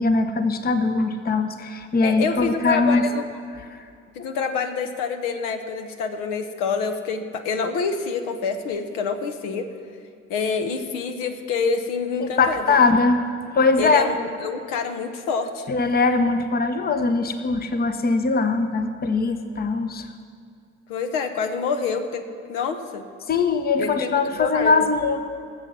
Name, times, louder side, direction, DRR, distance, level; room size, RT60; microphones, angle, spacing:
voice 1, 0.0-3.0 3.7-3.8 12.2-13.2 13.5-14.1 15.7-20.1 23.3-25.2, left 3 dB, 25° left, 9 dB, 0.9 m, -21 dB
voice 2, 2.0-3.2 4.1-9.7 10.3-12.6 13.8-15.7 20.9-23.0 23.8-24.9, left 5 dB, 60° left, 7 dB, 1.1 m, -27 dB
19.0 x 8.0 x 6.1 m, 2.4 s
figure-of-eight pair, 50°, 36 cm